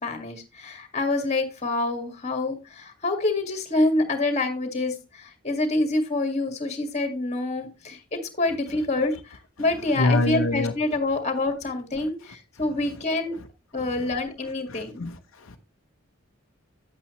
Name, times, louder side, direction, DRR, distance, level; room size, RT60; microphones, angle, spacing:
voice 1, 0.0-13.3 13.7-15.0, left 2 dB, 35° left, 1.9 m, -27 dB
voice 2, 9.9-10.7 12.0-12.1 13.8-14.0 14.7-15.6, left 2 dB, 80° left, 0.8 m, -26 dB
9.8 x 8.5 x 3.1 m
head